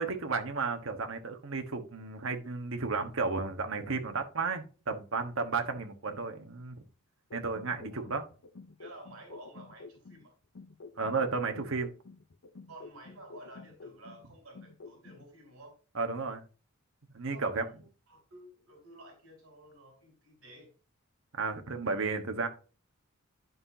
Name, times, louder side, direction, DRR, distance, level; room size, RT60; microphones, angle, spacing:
voice 1, 0.0-6.8 7.3-8.2 11.0-11.9 15.9-16.4 17.1-17.7 21.3-22.5, right 4 dB, 65° right, 1.2 m, -33 dB
sound 1, 7.3-10.2 10.6-14.2 14.6-15.2, left 3 dB, 65° left, 0.7 m, -50 dB
voice 2, 8.8-10.3 12.7-15.8 17.3-20.7, right 1 dB, 85° right, 2.8 m, -52 dB
11.0 x 5.7 x 2.7 m
head